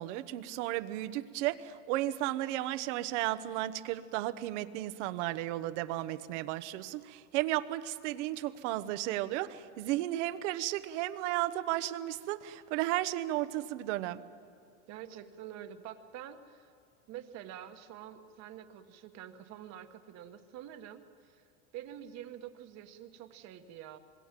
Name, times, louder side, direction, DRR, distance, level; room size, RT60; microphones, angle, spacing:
voice 1, 0.0-14.2, right 15 dB, 65° right, 14 dB, 1.2 m, -34 dB
voice 2, 14.9-16.7 17.1-21.4 21.7-24.0, right 10 dB, 45° right, 8 dB, 1.4 m, -47 dB
27.0 x 21.0 x 7.5 m, 2.5 s
supercardioid pair, 145°, 39 cm